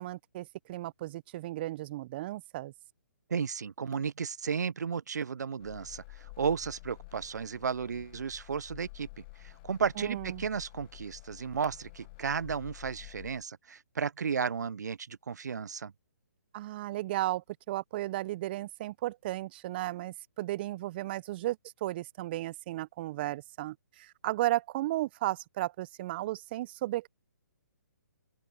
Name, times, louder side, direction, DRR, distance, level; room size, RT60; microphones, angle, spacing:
voice 1, 0.0-2.7 10.0-10.4 16.5-27.1, right 16 dB, 35° right, 0.7 m, -34 dB
voice 2, 3.3-15.9, right 6 dB, 70° right, 0.4 m, -34 dB
sound 1, 5.6-13.4, left 23 dB, 30° left, 0.8 m, -50 dB
open air
figure-of-eight pair, 135°, 10 cm